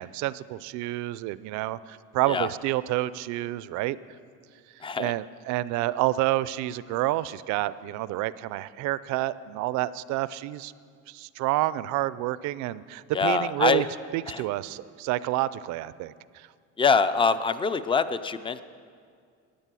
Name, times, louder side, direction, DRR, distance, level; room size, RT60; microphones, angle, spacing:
voice 1, 0.0-4.0 5.0-10.7 11.1-13.8 14.1-16.5, right 16 dB, 65° right, 17 dB, 0.5 m, -29 dB
voice 2, 4.8-5.1 13.1-13.8 14.3-14.4 16.8-18.6, left 5 dB, 15° left, 13 dB, 0.4 m, -24 dB
14.0 x 9.7 x 7.6 m, 2.2 s
cardioid pair, 140°, 31 cm